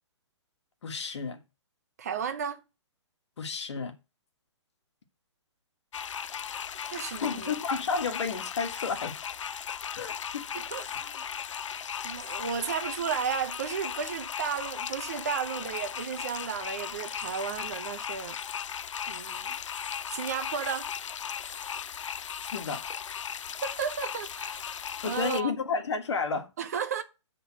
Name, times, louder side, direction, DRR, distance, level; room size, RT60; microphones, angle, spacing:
voice 1, 0.8-1.4 3.4-3.9 6.9-9.2 9.9-10.5 22.5-22.8 25.0-26.5, left 5 dB, 65° left, 1.5 m, -31 dB
voice 2, 2.0-2.6 6.9-7.5 10.5-11.3 12.0-18.4 19.1-19.6 20.1-20.9 23.6-25.5 26.6-27.0, right 7 dB, 35° right, 0.6 m, -34 dB
sound 1, 5.9-25.4, left 8 dB, 85° left, 0.5 m, -37 dB
7.9 x 3.7 x 5.8 m
hypercardioid pair, 175°, 15 cm